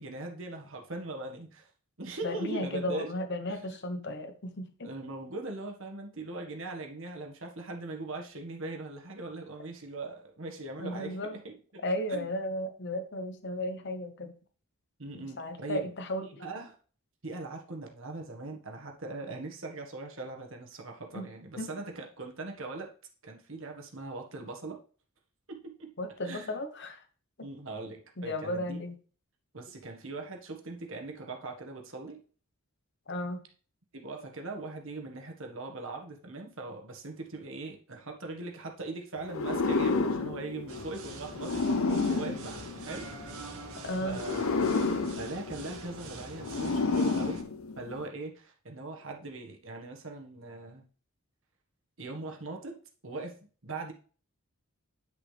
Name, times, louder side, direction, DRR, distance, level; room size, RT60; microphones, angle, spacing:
voice 1, 0.0-1.7 2.0-3.1 3.5-3.6 4.8-11.8 12.1-12.3 15.0-15.9 16.2-16.7 17.2-22.9 23.2-24.8 25.5-25.9 26.2-26.6 27.4-28.8 29.5-32.2 33.9-43.5 44.0-44.7 45.2-47.4 47.8-50.9 52.0-53.9, right 3 dB, 60° right, 2 dB, 1.6 m, -40 dB
voice 2, 2.2-4.9 10.8-11.4 11.8-14.3 15.4-16.4 21.1-21.3 21.6-21.7 26.0-27.0 27.4-27.5 28.2-29.0 33.1-33.4 43.8-44.2, left 1 dB, 50° left, 7 dB, 1.0 m, -34 dB
sound 1, 39.3-43.4 44.1-48.1, left 3 dB, 70° left, 0.7 m, -30 dB
sound 2, 40.7-47.4, right 2 dB, 90° right, 1.9 m, -44 dB
10.0 x 6.5 x 3.4 m, 0.41 s
head